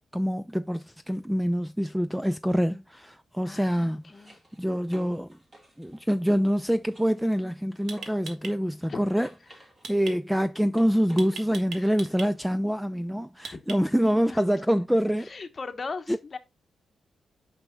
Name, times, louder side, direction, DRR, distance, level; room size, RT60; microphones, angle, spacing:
voice 1, 0.1-5.4 5.8-15.3 16.1-16.2, equal, ahead, 0.3 m, -26 dB
sound 1, 1.1-1.2 3.5-8.5 8.8-12.5 15.2-15.3, equal, 25° right, 2.7 m, -56 dB
voice 2, 3.5-4.4 8.9-9.0 11.8-12.0 13.5-13.6 14.3-14.4 15.3-16.4, left 4 dB, 30° left, 1.0 m, -38 dB
sound 2, 7.9-8.5 9.8-10.1 11.2-12.3 13.4-14.0, right 5 dB, 80° right, 1.5 m, -38 dB
8.9 x 6.1 x 2.2 m
wide cardioid pair, 155°, 0 cm